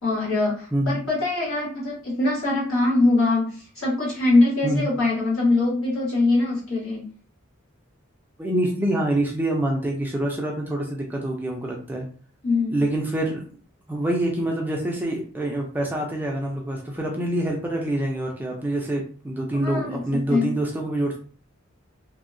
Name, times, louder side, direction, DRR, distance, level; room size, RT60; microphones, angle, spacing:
voice 1, 0.0-7.0 12.4-12.8 19.5-20.0 20.3-20.5, left 2 dB, 75° left, -5 dB, 1.4 m, -22 dB
voice 2, 8.4-12.0 12.7-13.5 13.9-21.2, right 1 dB, 10° right, -1 dB, 0.4 m, -26 dB
2.7 x 2.1 x 2.5 m, 0.42 s
head